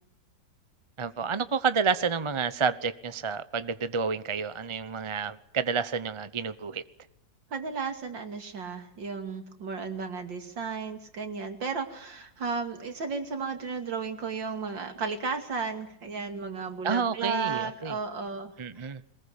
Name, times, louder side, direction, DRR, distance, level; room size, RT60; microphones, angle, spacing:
voice 1, 1.0-6.8 16.8-18.0 18.6-19.0, right 5 dB, 30° right, 13 dB, 0.6 m, -29 dB
voice 2, 7.5-19.1, right 5 dB, 85° right, 6 dB, 3.3 m, -34 dB
22.5 x 20.5 x 7.1 m, 0.74 s
omnidirectional pair, 2.0 m